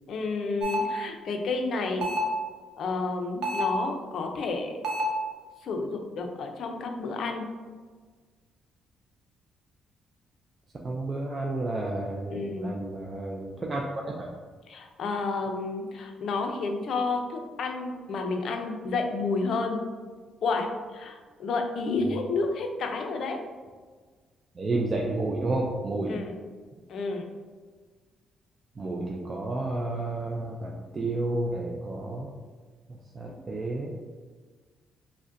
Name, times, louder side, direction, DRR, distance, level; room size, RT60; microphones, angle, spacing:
voice 1, 0.1-2.1 2.8-4.7 5.6-7.5 12.3-12.7 14.7-19.8 20.4-23.4 26.1-26.3 26.9-27.3 33.3-33.4, left 3 dB, 50° left, 4 dB, 0.4 m, -30 dB
sound 1, 0.6-0.9 2.0-2.4 3.4-3.8 4.8-5.2, left 1 dB, 75° right, 0.7 m, -28 dB
voice 2, 10.8-13.8 14.2-14.3 24.6-26.2 28.8-32.3 32.9-33.9, right 2 dB, 25° right, -2 dB, 0.3 m, -31 dB
5.0 x 2.1 x 2.5 m, 1.5 s
cardioid pair, 165°, 0 cm